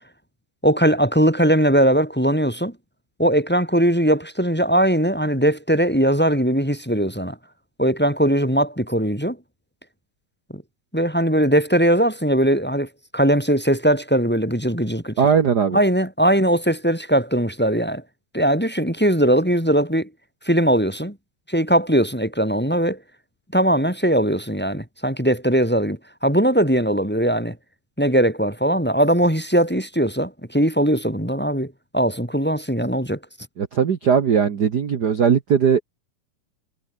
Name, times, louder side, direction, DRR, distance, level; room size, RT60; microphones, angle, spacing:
voice 1, 0.6-2.7 3.2-7.4 7.8-9.4 10.5-10.6 10.9-15.2 15.7-18.0 18.3-20.1 20.4-21.2 21.5-23.0 23.5-27.6 28.0-33.2, right 1 dB, 5° left, 5.6 m, -20 dB
voice 2, 15.2-15.8 33.6-35.8, right 7 dB, 65° right, 1.0 m, -19 dB
omnidirectional pair, 3.8 m